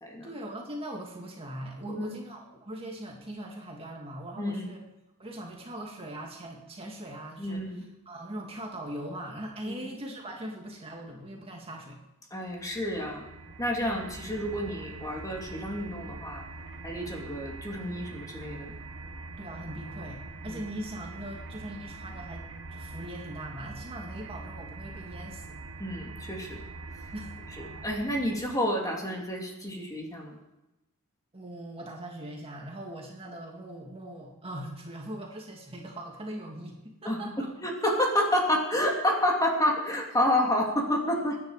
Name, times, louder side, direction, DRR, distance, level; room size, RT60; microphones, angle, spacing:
voice 1, 0.2-4.8 5.2-7.6 8.1-12.0 19.4-25.5 27.1-27.4 31.3-37.5, right 1 dB, 25° right, 0 dB, 2.3 m, -40 dB
voice 2, 1.8-2.2 4.4-4.7 7.4-7.8 9.7-9.8 12.3-13.2 13.6-16.4 16.8-18.7 20.4-20.6 25.8-26.6 27.6-30.4 37.0-41.4, left 1 dB, 15° left, 0 dB, 2.9 m, -29 dB
sound 1, 12.5-28.7, right 3 dB, 60° right, 1.3 m, -43 dB
24.0 x 10.5 x 5.0 m, 0.98 s
head